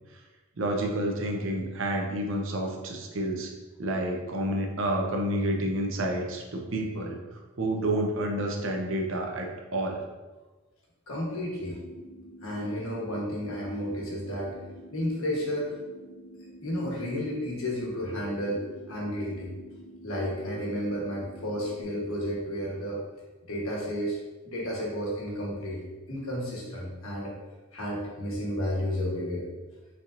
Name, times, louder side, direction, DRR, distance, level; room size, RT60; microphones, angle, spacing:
voice 1, 0.6-3.5 3.8-10.0, right 1 dB, 65° right, 1 dB, 0.7 m, -29 dB
voice 2, 11.1-11.8 12.4-14.6 14.9-15.8 16.6-19.5 20.0-23.0 23.5-24.2 24.4-25.8 26.1-27.3 27.7-29.5, equal, 75° left, -3 dB, 1.3 m, -32 dB
sound 1, 11.8-21.8, right 1 dB, 5° right, 1.2 m, -48 dB
5.1 x 3.4 x 2.6 m, 1.2 s
head